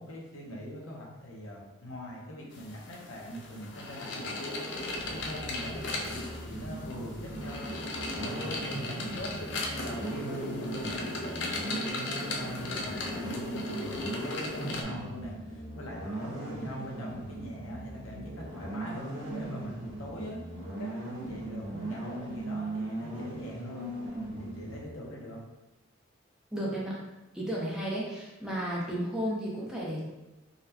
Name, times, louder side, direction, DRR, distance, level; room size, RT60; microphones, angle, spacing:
voice 1, 0.0-4.6 5.1-7.7 8.2-20.4 20.8-24.0 24.4-25.4, equal, 90° left, -2 dB, 0.8 m, -42 dB
sound 1, 2.5-14.8, left 2 dB, 60° left, 0.5 m, -37 dB
sound 2, 4.9-24.8, right 1 dB, 75° right, 1.0 m, -39 dB
voice 2, 26.5-27.0 27.3-30.0, equal, 5° right, -6 dB, 0.6 m, -33 dB
3.9 x 2.1 x 2.8 m, 1.0 s
head